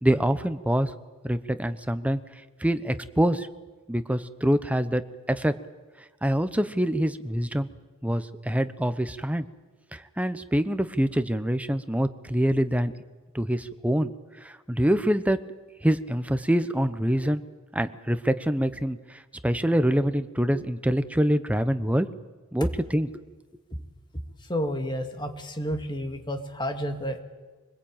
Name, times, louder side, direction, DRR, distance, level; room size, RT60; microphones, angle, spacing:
voice 1, 0.0-0.9 1.2-2.2 2.6-3.5 3.9-5.0 5.3-5.5 6.2-7.7 8.0-9.5 9.9-12.9 13.3-14.1 14.4-15.4 15.8-17.4 17.7-19.0 19.4-22.1 22.5-23.2, equal, 5° right, 11 dB, 1.0 m, -25 dB
voice 2, 24.5-27.2, equal, 20° left, 5 dB, 2.2 m, -30 dB
25.0 x 20.5 x 8.9 m, 1.3 s
head